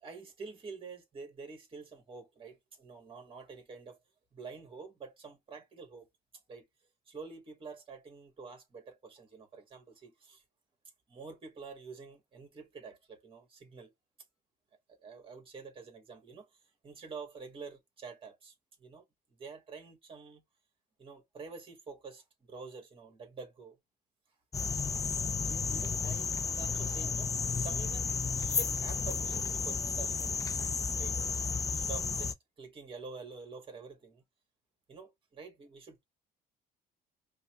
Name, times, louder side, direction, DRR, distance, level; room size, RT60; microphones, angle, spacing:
voice 1, 0.0-4.0 4.3-6.1 6.5-6.7 7.0-10.4 11.1-13.9 15.0-16.5 16.8-19.0 19.4-20.4 21.0-23.8 25.5-34.2 34.9-36.0, right 4 dB, 30° right, 1.7 m, -48 dB
sound 1, 24.5-32.3, left 5 dB, 20° left, 0.4 m, -32 dB
5.3 x 2.2 x 3.1 m
cardioid pair, 110°, 17 cm